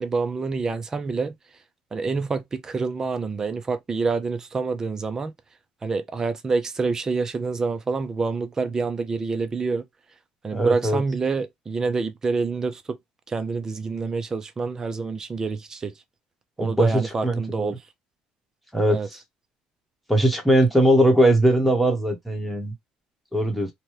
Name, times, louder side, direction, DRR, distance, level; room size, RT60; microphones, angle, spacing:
voice 1, 0.0-1.3 1.9-5.3 5.8-9.8 10.4-13.0 13.3-15.9 16.6-17.7 18.9-19.1, right 4 dB, 20° right, 0.4 m, -27 dB
voice 2, 10.5-11.0 16.6-17.8 18.7-19.2 20.1-22.7 23.3-23.7, right 1 dB, ahead, 1.1 m, -20 dB
2.9 x 2.2 x 3.1 m
cardioid pair, 125°, 3 cm